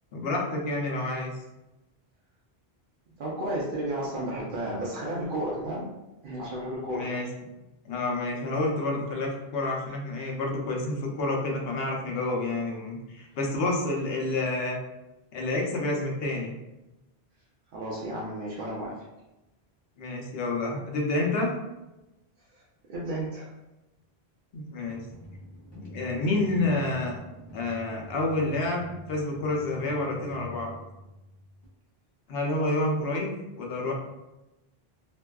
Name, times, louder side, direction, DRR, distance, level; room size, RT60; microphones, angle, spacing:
voice 1, 0.1-1.3 6.9-7.3 7.8-14.8 15.3-16.5 20.0-21.5 24.5-25.0 25.8-27.2 27.5-30.7 32.3-33.9, left 2 dB, 75° left, 0 dB, 0.8 m, -29 dB
voice 2, 3.2-5.9 6.2-7.1 17.7-19.0 22.9-23.5, right 1 dB, 60° right, -5 dB, 0.6 m, -32 dB
sound 1, 24.8-31.6, equal, 30° left, 0.7 m, -46 dB
2.6 x 2.2 x 2.2 m, 0.98 s
omnidirectional pair, 1.0 m